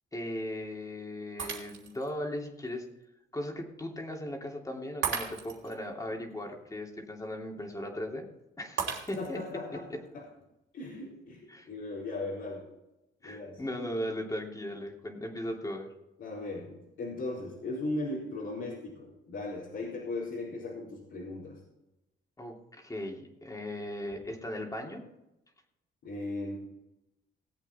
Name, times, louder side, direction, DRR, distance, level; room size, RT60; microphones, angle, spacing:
voice 1, 0.1-2.9 3.3-8.3 8.6-9.4 9.7-10.0 11.5-11.7 13.2-15.9 22.4-25.0, left 1 dB, 15° left, 1 dB, 2.9 m, -37 dB
Shatter, 1.4-2.1 2.7-2.8 5.0-5.8 8.8-9.5, right 7 dB, 70° right, 3.0 m, -35 dB
voice 2, 9.2-9.9 10.1-10.2 10.7-12.6 13.2-13.6 16.2-21.6 26.0-26.6, left 2 dB, 70° left, -8 dB, 4.4 m, -37 dB
19.0 x 8.1 x 4.4 m, 0.91 s
cardioid pair, 90°, 20 cm